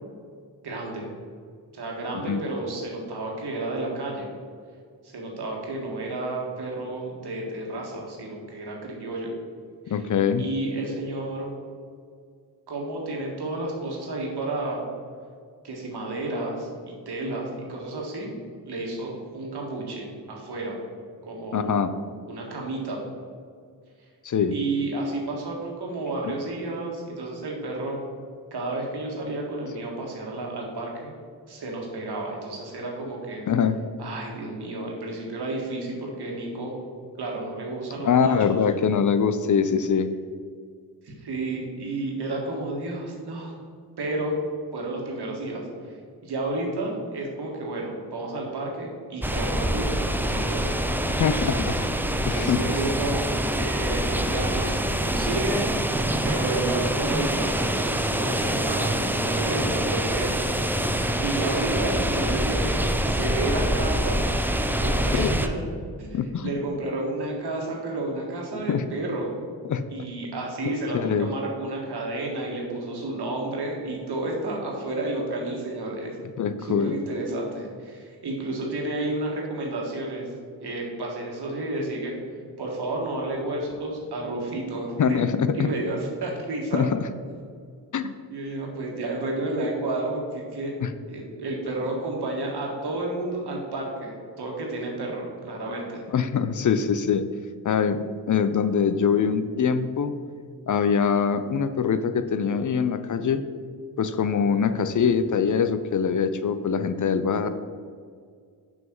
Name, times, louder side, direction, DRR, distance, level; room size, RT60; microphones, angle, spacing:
voice 1, 0.6-1.1 1.7-4.3 5.0-9.3 9.8-10.0 10.4-11.5 12.7-14.8 15.6-18.4 18.6-20.8 21.2-21.8 22.2-23.0 24.5-28.0 28.5-31.1 31.4-33.4 34.0-36.8 37.2-38.6 41.0-43.5 44.0-44.4 44.7-50.7 52.3-53.2 53.6-56.0 56.2-60.9 61.2-64.2 64.8-65.6 66.0-69.3 69.9-76.2 76.6-80.3 80.6-82.2 82.6-85.2 85.5-86.8 88.3-90.7 91.1-96.0, right 2 dB, 70° right, -1 dB, 1.8 m, -31 dB
voice 2, 9.9-10.5 21.5-21.9 24.2-24.6 26.2-26.3 33.5-33.8 38.0-40.1 51.2-51.9 52.2-52.6 65.1-65.3 66.1-66.5 68.7-68.9 69.6-69.8 70.7-71.3 76.4-76.9 85.0-85.7 86.7-87.0 87.9-88.1 90.8-90.9 96.1-97.3 97.6-98.0 98.3-100.1 100.7-103.4 104.0-107.5, left 6 dB, 50° left, 11 dB, 0.5 m, -23 dB
sound 1, 49.2-65.5, right 1 dB, 5° right, 0.5 m, -25 dB
sound 2, 51.8-60.2, right 2 dB, 25° right, 1.6 m, -41 dB
6.3 x 5.6 x 4.5 m, 2.1 s
cardioid pair, 55°, 40 cm